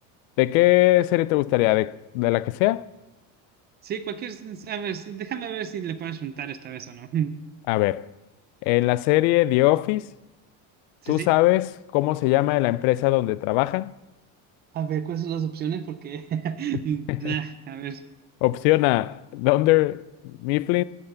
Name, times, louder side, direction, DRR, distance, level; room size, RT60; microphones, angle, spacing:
voice 1, 0.4-2.9 7.7-8.1 8.6-10.1 11.1-13.9 17.1-17.3 18.4-20.8, left 18 dB, 80° left, 0.5 m, -21 dB
voice 2, 3.8-7.4 11.0-11.3 14.7-18.0, right 8 dB, 25° right, 0.4 m, -31 dB
13.5 x 5.6 x 7.9 m
cardioid pair, 170°, 39 cm